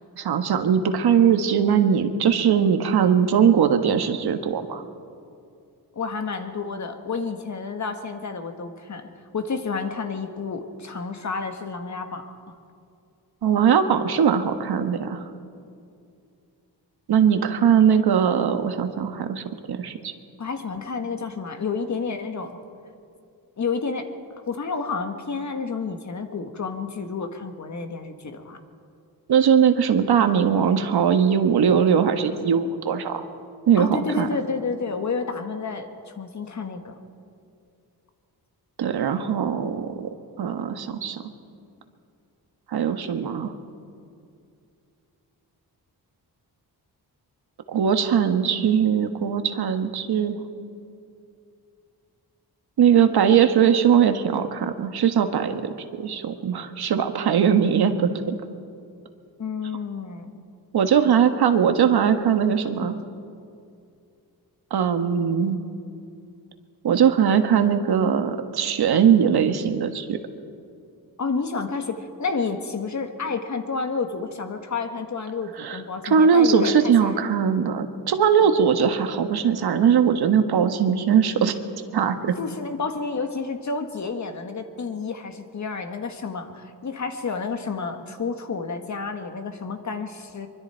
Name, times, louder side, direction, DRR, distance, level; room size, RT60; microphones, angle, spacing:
voice 1, 0.2-4.8 13.4-15.2 17.1-20.1 29.3-33.2 33.7-34.3 38.8-40.1 40.4-41.2 42.7-43.5 47.7-50.4 52.8-58.4 60.7-63.0 64.7-65.6 66.8-70.2 75.6-75.8 76.0-81.6 81.9-82.3, right 7 dB, 75° right, 7 dB, 1.5 m, -20 dB
voice 2, 6.0-12.4 20.4-22.6 23.6-24.1 24.5-28.6 33.8-37.0 59.4-60.4 71.2-77.2 82.4-90.5, left 4 dB, 45° left, 6 dB, 1.8 m, -30 dB
24.0 x 24.0 x 4.6 m, 2.4 s
wide cardioid pair, 120°, 39 cm